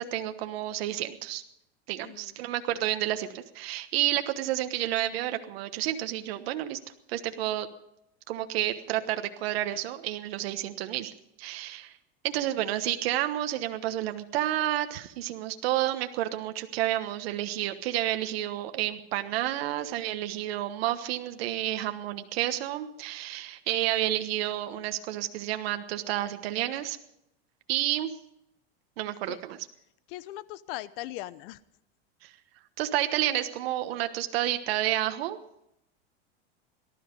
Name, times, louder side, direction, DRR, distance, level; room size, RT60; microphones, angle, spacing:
voice 1, 0.0-1.4 1.9-6.8 7.1-7.7 8.3-11.1 11.4-12.0 12.2-27.0 27.7-28.1 29.0-29.6 32.2-32.3 32.8-35.4, right 13 dB, 70° right, 8 dB, 1.3 m, -30 dB
voice 2, 2.0-2.4 29.3-29.4 30.1-31.6, left 16 dB, 60° left, 17 dB, 0.9 m, -39 dB
18.5 x 12.5 x 5.3 m, 0.80 s
supercardioid pair, 125°, 31 cm